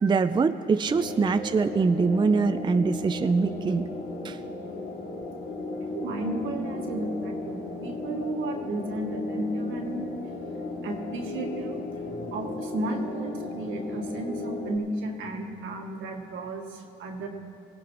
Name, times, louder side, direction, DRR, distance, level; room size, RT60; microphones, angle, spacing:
voice 1, 0.0-3.9 4.2-4.4, right 4 dB, 25° right, 9 dB, 0.4 m, -23 dB
sound 1, 0.9-14.8, left 2 dB, 60° left, 2.4 m, -35 dB
voice 2, 5.8-10.1 10.8-17.3, right 2 dB, 85° right, 2 dB, 1.6 m, -33 dB
20.5 x 16.5 x 3.0 m, 2.6 s
cardioid pair, 90°, 20 cm